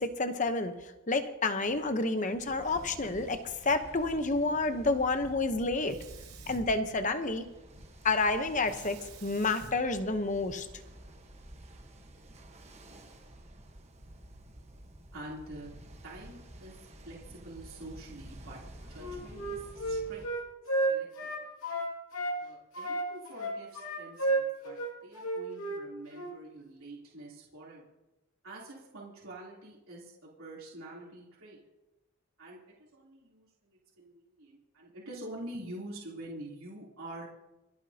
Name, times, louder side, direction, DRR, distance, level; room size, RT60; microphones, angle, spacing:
voice 1, 0.0-6.0 6.5-7.4 8.0-10.7, left 3 dB, 35° left, 8 dB, 0.9 m, -29 dB
Ocean, 2.4-20.3, right 1 dB, 30° right, 1.2 m, -51 dB
Sink (filling or washing), 5.8-7.5 8.6-10.9, right 4 dB, 90° right, 1.9 m, -51 dB
voice 2, 15.1-15.7 16.0-18.6 18.9-20.2 20.9-21.3 22.4-27.8 28.4-31.6 32.4-37.3, right 1 dB, 70° right, -6 dB, 3.4 m, -46 dB
Wind instrument woodwind instrument, 19.0-22.4 22.7-25.8 26.1-26.3, right 2 dB, 85° left, 2.4 m, -32 dB
27.5 x 9.4 x 2.9 m, 1.0 s
head